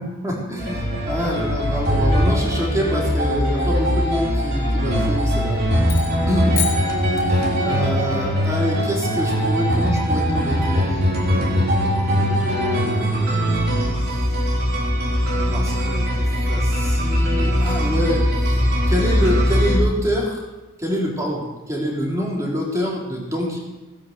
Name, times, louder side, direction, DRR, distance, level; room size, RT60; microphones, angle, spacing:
voice 1, 0.0-5.6 6.3-6.6 7.3-13.6 15.3-18.6 18.9-20.4 20.8-23.6, equal, 15° right, -3 dB, 3.9 m, -26 dB
sound 1, 0.6-19.8, equal, 45° right, 3.7 m, -21 dB
sound 2, 5.9-7.8, left 9 dB, 45° left, 3.0 m, -31 dB
17.5 x 10.0 x 6.9 m, 1.2 s
head